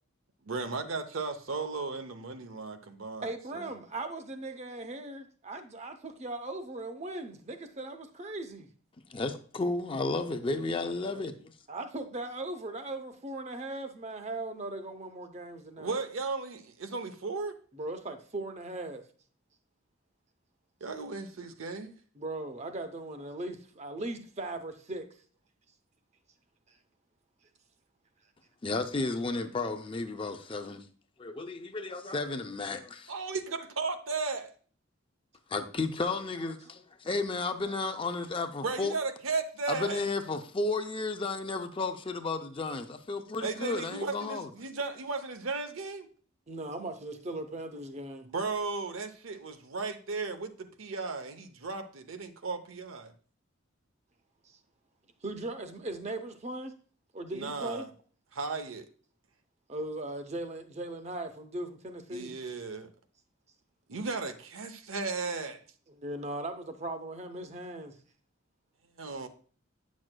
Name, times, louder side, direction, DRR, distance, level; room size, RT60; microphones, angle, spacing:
voice 1, 0.4-3.7 15.8-17.5 20.8-22.0 33.1-34.5 38.6-40.0 43.4-46.1 48.2-53.1 57.3-57.9 58.3-58.9 62.1-62.9 63.9-65.6 69.0-69.3, right 4 dB, 80° right, 0.7 m, -35 dB
voice 2, 3.2-8.7 11.7-15.9 17.7-19.0 22.2-25.1 46.5-48.3 54.4-54.6 55.2-56.7 57.1-57.9 59.7-62.3 65.9-67.9, right 2 dB, 35° right, 0.7 m, -38 dB
voice 3, 9.1-11.4 28.6-30.8 31.2-33.1 35.5-38.9 39.7-44.5, left 3 dB, 25° left, 0.4 m, -33 dB
8.7 x 6.2 x 2.2 m
head